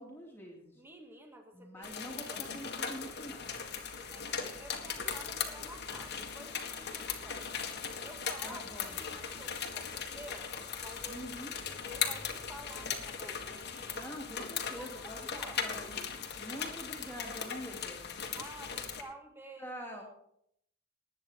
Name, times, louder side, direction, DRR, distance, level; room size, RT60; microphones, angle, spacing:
voice 1, 0.0-0.8 1.5-3.5 8.4-9.3 11.1-11.5 13.9-18.1 19.6-20.0, equal, 10° left, -2 dB, 2.5 m, -46 dB
voice 2, 0.8-2.5 3.9-7.6 8.0-10.5 10.8-11.3 11.7-14.1 14.7-15.6 18.3-19.7, right 1 dB, 10° right, 3 dB, 2.1 m, -51 dB
sound 1, 1.8-19.0, left 7 dB, 50° left, 1.9 m, -39 dB
20.0 x 9.0 x 4.9 m, 0.73 s
head